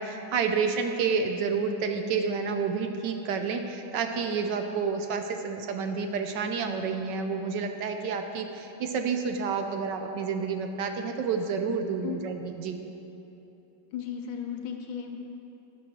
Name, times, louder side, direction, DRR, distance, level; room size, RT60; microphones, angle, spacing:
voice 1, 0.0-12.8, right 5 dB, 70° right, 5 dB, 1.2 m, -29 dB
voice 2, 13.9-15.2, left 8 dB, 85° left, 3 dB, 1.7 m, -35 dB
11.0 x 6.3 x 6.0 m, 3.0 s
omnidirectional pair, 2.1 m